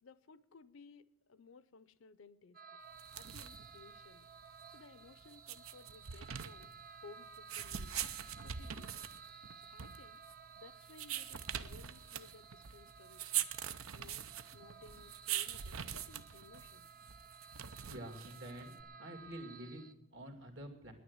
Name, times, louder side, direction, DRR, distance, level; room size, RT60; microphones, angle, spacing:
voice 1, 0.0-2.6 3.1-4.3 4.7-6.7 7.0-8.0 8.4-9.1 9.7-10.2 10.6-13.5 13.9-14.2 14.5-16.9, left 4 dB, 70° left, 17 dB, 0.6 m, -59 dB
sound 1, 2.5-19.9, right 6 dB, 40° right, 0.8 m, -56 dB
sound 2, 2.9-18.8, right 9 dB, 80° right, 0.7 m, -43 dB
voice 2, 17.9-18.7 19.0-20.9, right 1 dB, 60° right, 5 dB, 2.3 m, -48 dB
10.5 x 9.3 x 9.4 m, 0.83 s
head